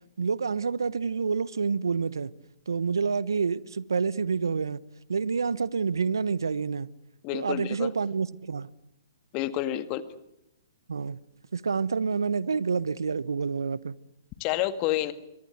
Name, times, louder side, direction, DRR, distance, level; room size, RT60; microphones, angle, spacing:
voice 1, 0.2-2.3 2.7-4.8 5.1-6.9 7.3-8.7 10.9-11.2 11.5-13.9, right 5 dB, 75° right, 1.0 m, -28 dB
voice 2, 7.2-7.9 9.3-10.0 14.4-15.1, left 13 dB, 35° left, 1.9 m, -29 dB
23.5 x 23.5 x 8.1 m
figure-of-eight pair, 125°, 2 cm